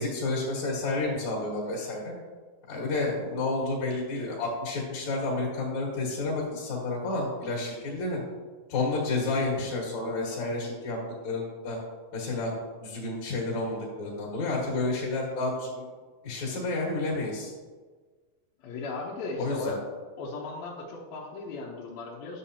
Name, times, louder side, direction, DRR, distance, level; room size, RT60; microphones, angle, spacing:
voice 1, 0.0-2.1 2.7-8.2 8.7-11.0 11.2-11.8 12.1-12.5 12.8-15.9 16.2-17.5 19.4-19.8, left 2 dB, 55° left, -6 dB, 2.7 m, -30 dB
voice 2, 18.6-19.8 20.2-22.4, left 3 dB, 75° left, -4 dB, 2.7 m, -36 dB
11.0 x 7.1 x 2.8 m, 1.4 s
omnidirectional pair, 4.4 m